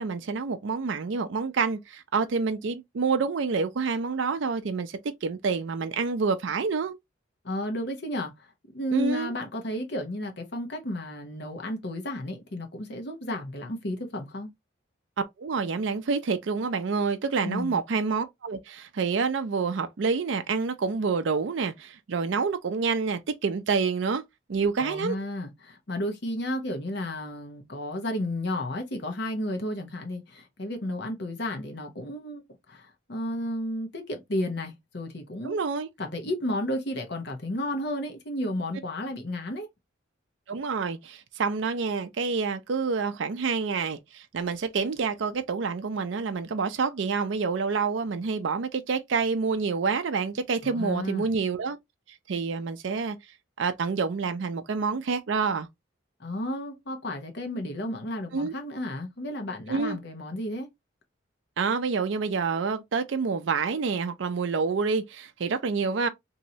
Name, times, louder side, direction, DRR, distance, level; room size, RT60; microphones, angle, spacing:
voice 1, 0.0-7.0 8.9-9.3 15.4-24.2 24.5-25.2 35.4-35.9 40.5-51.8 52.3-53.2 53.6-55.7 58.3-58.6 59.7-60.0 61.6-66.1, right 5 dB, 65° right, 0.4 m, -28 dB
voice 2, 7.4-14.5 17.4-17.8 24.8-32.4 32.7-35.6 36.0-39.7 50.6-51.3 56.2-60.7, left 1 dB, 55° left, 0.9 m, -32 dB
3.0 x 2.7 x 2.7 m
head